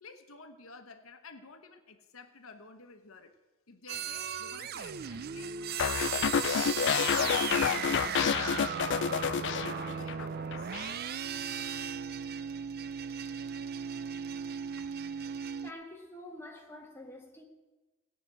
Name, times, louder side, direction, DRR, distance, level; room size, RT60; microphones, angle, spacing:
voice 1, 0.0-3.4 3.7-5.7 6.1-7.3 8.3-10.8, left 4 dB, 75° left, 1.0 m, -51 dB
sound 1, 3.9-15.7, right 7 dB, 50° right, 0.5 m, -36 dB
sound 2, 5.8-10.2 10.5-10.9, left 8 dB, 60° left, 0.4 m, -29 dB
voice 2, 15.6-17.4, left 1 dB, 10° left, 1.7 m, -47 dB
17.0 x 5.9 x 9.1 m
head